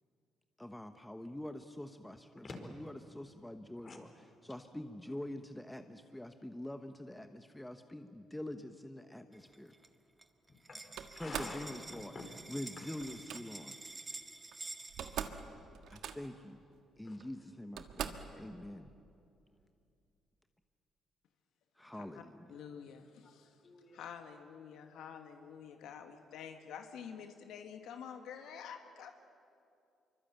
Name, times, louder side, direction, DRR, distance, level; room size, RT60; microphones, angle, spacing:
voice 1, 0.6-2.5 2.8-4.1 4.4-9.7 11.2-12.1 12.5-13.7 15.9-16.6 17.0-18.9 21.8-22.5, left 1 dB, 10° left, 8 dB, 1.1 m, -45 dB
sound 1, 9.3-9.9 10.2-10.3 10.5-15.2, right 2 dB, 20° right, 1.7 m, -49 dB
Slam, 11.0-11.6 13.0-13.4 14.5-14.6 14.8-15.4 15.7-16.4 17.2-17.3 17.8-18.3, right 9 dB, 80° right, 1.5 m, -42 dB
voice 2, 11.1-12.3 12.8-12.9 15.5-15.7 17.0-17.2 23.2-23.3 23.6-24.0, left 3 dB, 40° left, 4 dB, 4.7 m, -49 dB
voice 3, 21.9-22.2 22.5-23.6 23.9-29.1, left 7 dB, 85° left, 6 dB, 1.6 m, -48 dB
25.5 x 24.0 x 9.0 m, 2.6 s
cardioid pair, 90°, 0 cm